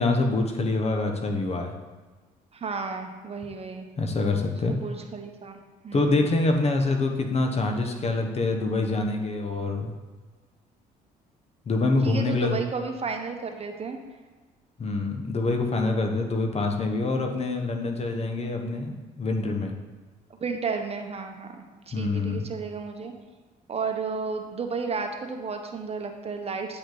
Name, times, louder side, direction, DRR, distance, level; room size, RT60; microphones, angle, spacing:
voice 1, 0.0-1.7 4.0-4.8 5.9-9.9 11.7-12.6 14.8-19.7 21.9-22.5, left 3 dB, 40° left, 4 dB, 1.1 m, -25 dB
voice 2, 2.5-3.9 4.7-6.3 12.0-14.0 20.3-23.1 23.7-26.8, right 5 dB, 40° right, 5 dB, 1.0 m, -33 dB
8.6 x 5.2 x 3.9 m, 1.4 s
supercardioid pair, 75°, 17 cm